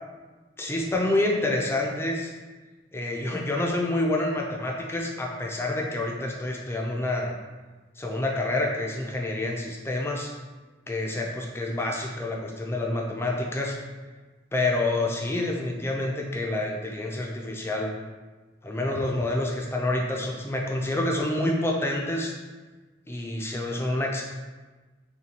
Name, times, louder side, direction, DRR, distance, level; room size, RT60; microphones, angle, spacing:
voice 1, 0.6-2.3 2.9-7.3 8.0-10.3 10.9-13.8 14.5-17.9 18.6-22.3 23.1-24.2, left 2 dB, 15° left, 0 dB, 0.4 m, -28 dB
5.7 x 2.3 x 2.8 m, 1.3 s
head